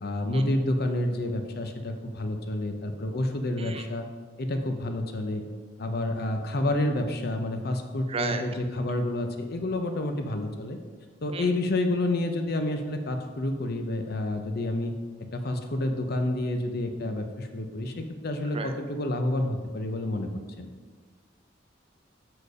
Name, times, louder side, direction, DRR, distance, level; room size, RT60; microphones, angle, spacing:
voice 1, 0.0-4.0 4.4-5.4 5.8-10.8 11.2-14.9 15.3-20.3 20.6-20.7, left 1 dB, 55° left, 6 dB, 0.7 m, -29 dB
voice 2, 8.1-8.4 11.3-11.5 18.5-18.7, right 4 dB, 30° right, 5 dB, 0.6 m, -32 dB
6.6 x 4.5 x 4.8 m, 1.5 s
head